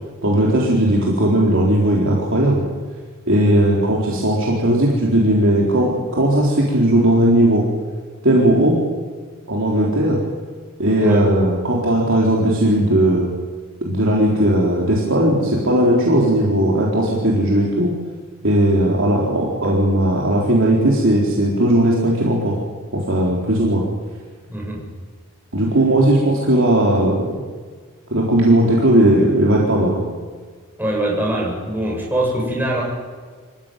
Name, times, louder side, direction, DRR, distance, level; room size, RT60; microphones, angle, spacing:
voice 1, 0.2-2.6 3.3-7.6 8.2-8.8 9.5-10.2 10.8-13.3 13.8-17.9 18.4-22.6 22.9-23.8 25.5-27.3 28.1-30.0, right 1 dB, 60° right, -3 dB, 4.1 m, -17 dB
voice 2, 24.5-24.8 30.8-32.8, right 1 dB, 10° right, -2 dB, 7.8 m, -22 dB
26.0 x 16.0 x 9.3 m, 1.5 s
head